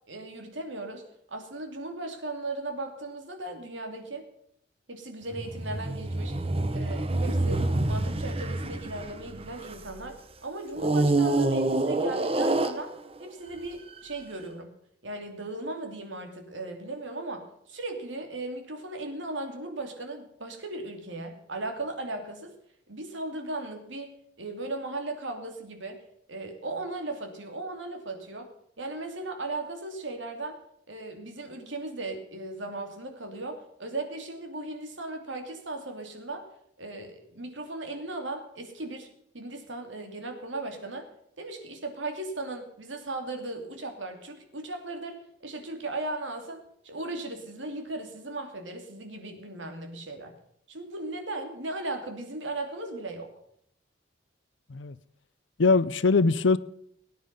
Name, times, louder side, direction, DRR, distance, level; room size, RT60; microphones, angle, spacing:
voice 1, 0.1-4.2 4.9-6.4 6.7-12.9 13.2-14.7 15.0-22.6 22.9-26.0 26.3-28.5 28.8-30.6 30.9-36.5 36.8-39.1 39.3-41.1 41.4-50.3 50.7-53.4, right 2 dB, 90° right, 2.8 m, -37 dB
sound 1, 5.3-10.0 10.8-13.3 14.0-14.1, right 2 dB, 30° right, 1.0 m, -27 dB
voice 2, 55.6-56.6, left 4 dB, 80° left, 0.6 m, -22 dB
18.0 x 9.5 x 5.5 m
head